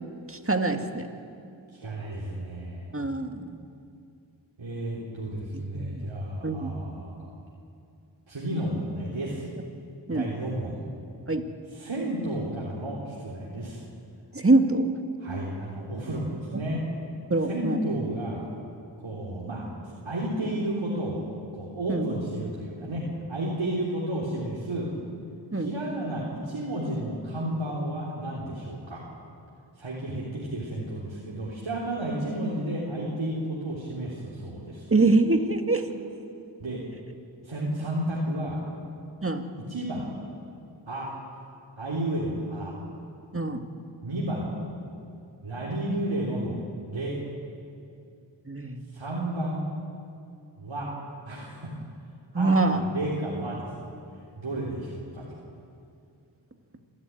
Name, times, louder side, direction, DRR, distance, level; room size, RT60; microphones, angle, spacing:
voice 1, 0.3-1.1 2.9-3.6 5.5-6.1 6.4-6.7 10.1-10.3 11.3-11.5 14.3-14.9 17.3-17.8 21.9-22.1 25.5-25.7 34.9-35.9 39.2-39.4 43.3-43.7 48.5-48.8 52.3-52.8, right 2 dB, 30° right, 5 dB, 2.0 m, -24 dB
voice 2, 1.7-2.8 4.6-7.4 8.3-9.4 10.1-10.8 11.7-13.8 15.2-16.8 17.5-18.4 19.0-19.6 20.0-21.3 21.5-24.9 25.5-29.0 29.8-34.9 36.6-36.8 37.4-38.6 39.7-40.1 40.9-41.1 41.8-42.7 44.0-44.5 45.4-46.6 46.9-47.2 48.9-49.7 50.6-50.9 51.2-51.7 52.3-53.9 54.3-55.2, right 1 dB, 80° right, -6 dB, 3.4 m, -32 dB
26.5 x 13.0 x 9.5 m, 2.5 s
cardioid pair, 40°, 47 cm